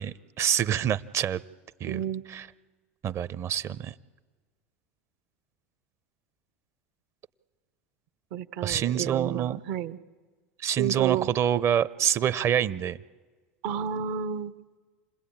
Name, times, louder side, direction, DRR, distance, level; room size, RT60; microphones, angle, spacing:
voice 1, 0.0-1.4 1.8-2.0 2.3-2.5 3.0-3.9 8.6-9.6 10.6-13.0, right 9 dB, 40° right, 15 dB, 0.8 m, -26 dB
voice 2, 1.9-2.2 8.3-10.0 10.8-11.3 13.6-14.5, right 9 dB, 60° right, 12 dB, 1.0 m, -31 dB
28.5 x 21.0 x 8.8 m, 1.5 s
hypercardioid pair, 90°, 7 cm